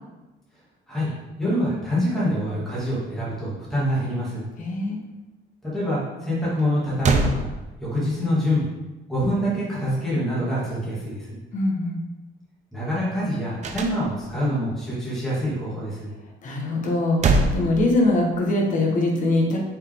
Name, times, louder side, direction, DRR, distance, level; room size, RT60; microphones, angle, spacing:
voice 1, 1.4-4.4 5.6-7.5 7.8-8.7 9.1-11.3 12.7-16.1, equal, ahead, -9 dB, 2.1 m, -25 dB
voice 2, 4.6-5.0 11.5-12.0 16.4-19.6, left 2 dB, 40° left, -1 dB, 1.2 m, -22 dB
sound 1, 6.6-6.7 7.0-8.2 13.6-14.5 16.8-18.4, right 3 dB, 35° right, 0.6 m, -24 dB
6.6 x 5.1 x 3.5 m, 1.1 s
cardioid pair, 180°, 21 cm